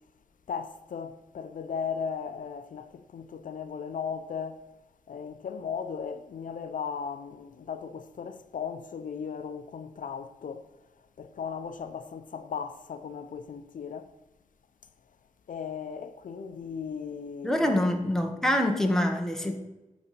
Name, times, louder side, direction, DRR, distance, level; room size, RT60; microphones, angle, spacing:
voice 1, 0.5-4.7 5.1-10.7 11.2-14.1 15.5-17.8, left 6 dB, 75° left, 0.5 m, -37 dB
voice 2, 17.4-19.6, left 1 dB, 5° left, 1.0 m, -25 dB
11.0 x 4.0 x 5.7 m
wide cardioid pair, 130°, 14 cm